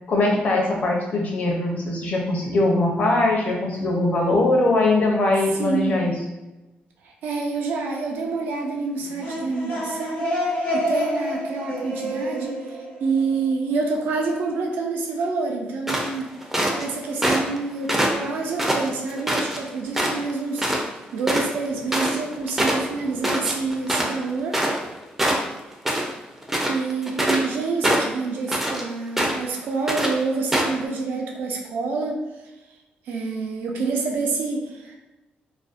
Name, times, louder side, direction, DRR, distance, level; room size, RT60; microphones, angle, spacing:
voice 1, 0.1-6.1, left 2 dB, 50° left, -1 dB, 0.6 m, -21 dB
voice 2, 5.6-6.0 7.0-10.3 10.7-16.3 16.8-20.7 21.1-24.6 26.7-32.2 33.1-35.0, right 4 dB, 85° right, 0 dB, 0.4 m, -27 dB
sound 1, 9.0-13.7, equal, 70° left, 0.9 m, -28 dB
sound 2, 15.9-16.9 17.2-17.6 17.9-19.6 19.9-20.3 20.6-20.8 21.1-24.9 25.2-26.1 26.4-27.5 27.8-28.8 29.2-29.5 29.9-30.1 30.5-30.8, right 1 dB, 10° right, 0.4 m, -23 dB
2.5 x 2.0 x 2.4 m, 1.0 s
cardioid pair, 125°, 3 cm